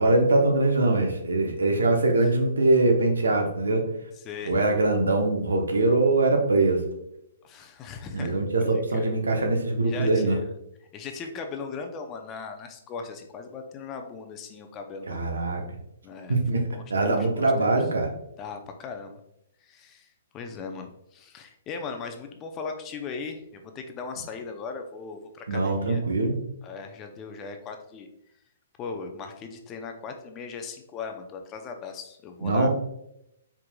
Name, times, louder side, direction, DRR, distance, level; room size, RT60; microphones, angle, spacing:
voice 1, 0.0-3.9 4.4-6.8 8.1-10.4 15.1-15.6 16.3-16.6 16.9-18.1 25.5-26.4 32.4-32.7, right 2 dB, 80° right, 3 dB, 0.9 m, -22 dB
voice 2, 7.4-9.1 9.8-10.5 10.9-15.2 16.0-16.4 16.7-17.7 18.4-19.2 19.6-20.1 20.3-26.0 26.6-28.1 28.8-32.7, left 5 dB, 25° left, 5 dB, 0.5 m, -38 dB
4.5 x 3.6 x 2.3 m, 0.80 s
hypercardioid pair, 130°, 0 cm